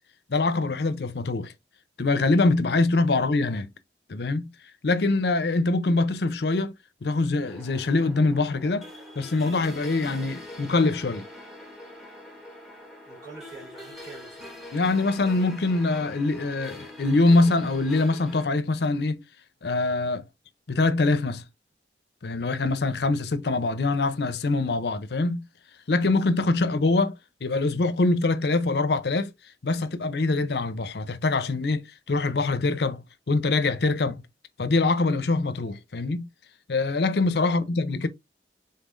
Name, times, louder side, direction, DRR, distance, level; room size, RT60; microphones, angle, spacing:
voice 1, 0.3-1.5 2.0-3.7 4.1-4.5 4.8-6.7 7.0-8.9 9.2-11.3 14.7-19.2 19.6-20.2 20.7-21.4 22.2-25.4 25.9-29.3 29.6-34.2 34.6-36.3 36.7-38.1, left 3 dB, 65° left, 0.6 m, -24 dB
sound 1, 7.4-18.4, left 1 dB, ahead, 1.2 m, -43 dB
voice 2, 13.1-14.5 26.5-26.7 37.4-37.6, right 3 dB, 25° right, 3.2 m, -46 dB
5.5 x 3.8 x 2.5 m
head